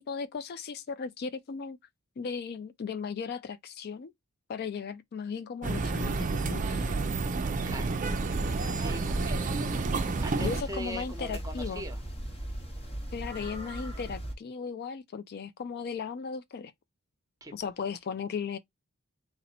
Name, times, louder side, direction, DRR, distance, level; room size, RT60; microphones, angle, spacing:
voice 1, 0.0-1.8 2.2-4.1 4.5-7.0 10.4-11.8 13.1-16.7 17.5-18.6, left 6 dB, 45° left, 0.3 m, -36 dB
sound 1, 5.6-10.6, right 3 dB, 35° right, 0.4 m, -30 dB
voice 2, 7.6-8.0 8.4-9.7 10.2-12.0 17.4-17.5, right 1 dB, 15° right, 0.9 m, -41 dB
sound 2, 8.3-14.3, right 1 dB, 25° left, 0.9 m, -38 dB
4.0 x 2.0 x 4.1 m
head